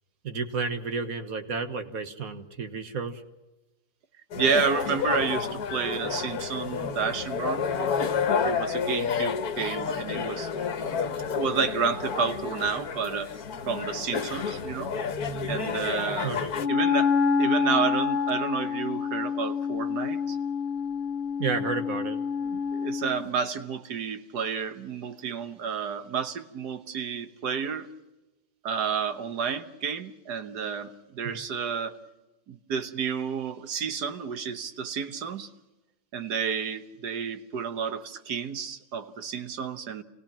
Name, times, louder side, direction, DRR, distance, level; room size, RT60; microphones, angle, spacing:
voice 1, 0.2-3.2 16.2-16.6 21.4-22.6 31.2-31.4, right 4 dB, 60° right, 7 dB, 1.8 m, -32 dB
sound 1, 4.3-16.7, left 6 dB, 70° left, 1.6 m, -30 dB
voice 2, 4.4-7.7 8.3-10.5 11.3-13.3 13.6-14.9 15.5-16.3 16.7-20.4 22.7-27.9 28.6-32.0 32.5-35.5 36.1-40.0, right 6 dB, 85° right, 9 dB, 1.8 m, -30 dB
Wind instrument woodwind instrument, 16.6-23.2, left 6 dB, 45° left, 2.3 m, -27 dB
27.5 x 17.0 x 7.4 m, 1.0 s
omnidirectional pair, 1.7 m